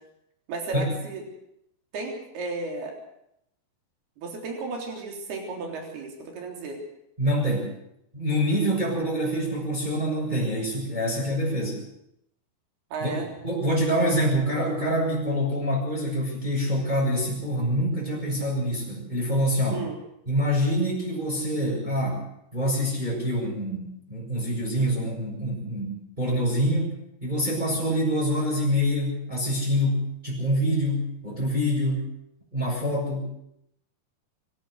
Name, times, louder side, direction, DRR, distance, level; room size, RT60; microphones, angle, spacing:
voice 1, 0.5-1.2 1.9-3.0 4.2-6.8 12.9-13.3 19.7-19.9, right 3 dB, 80° right, 1 dB, 5.6 m, -34 dB
voice 2, 7.2-7.7 8.1-11.8 13.0-13.1 13.4-19.8 20.3-22.2 22.5-26.9 27.2-32.0 32.5-33.2, equal, 10° right, -4 dB, 6.8 m, -26 dB
25.0 x 13.0 x 8.0 m, 0.78 s
omnidirectional pair, 4.4 m